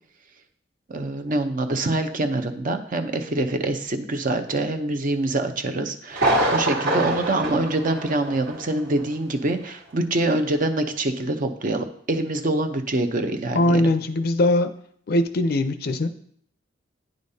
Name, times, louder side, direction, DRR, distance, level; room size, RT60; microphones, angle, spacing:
voice 1, 0.9-13.9, right 2 dB, 45° right, 7 dB, 0.6 m, -25 dB
Thunder, 6.1-8.7 9.0-9.1 9.6-9.7, right 1 dB, 65° right, 1.5 m, -25 dB
voice 2, 13.5-14.7 15.1-16.1, left 1 dB, 55° left, 10 dB, 0.5 m, -21 dB
9.5 x 5.1 x 2.8 m, 0.63 s
head